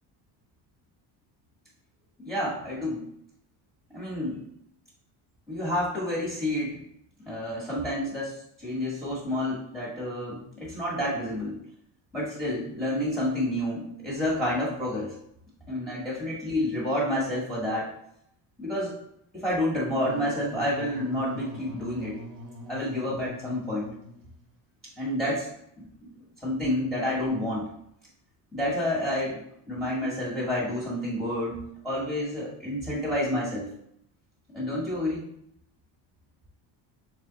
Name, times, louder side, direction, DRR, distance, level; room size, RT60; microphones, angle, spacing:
voice 1, 2.2-3.0 3.9-4.4 5.5-6.8 7.2-11.6 12.1-15.1 15.7-17.9 18.6-18.9 19.3-22.2 22.7-23.9 25.0-25.5 26.0-26.1 26.4-27.7 28.5-29.4 29.7-33.6 34.5-35.3, left 1 dB, ahead, -8 dB, 1.4 m, -29 dB
Wind instrument woodwind instrument, 19.9-24.5, equal, 45° right, 1.3 m, -43 dB
3.5 x 3.4 x 3.9 m, 0.74 s
cardioid pair, 115°, 46 cm